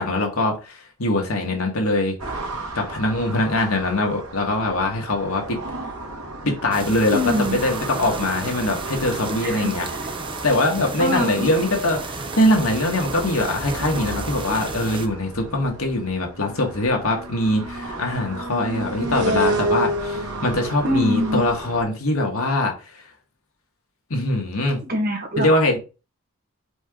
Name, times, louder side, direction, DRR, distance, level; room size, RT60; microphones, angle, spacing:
voice 1, 0.0-2.2 2.8-5.6 6.4-9.9 10.4-23.0 24.1-24.8 25.4-25.8, left 1 dB, 75° left, 1.8 m, -22 dB
sound 1, 2.2-21.8, right 1 dB, 85° right, 1.5 m, -31 dB
sound 2, 6.7-15.1, right 3 dB, 20° right, 0.6 m, -34 dB
voice 2, 7.1-7.6 9.4-9.7 11.0-11.5 20.8-21.4 24.8-25.5, left 1 dB, 45° right, 1.6 m, -23 dB
5.0 x 4.9 x 3.8 m
head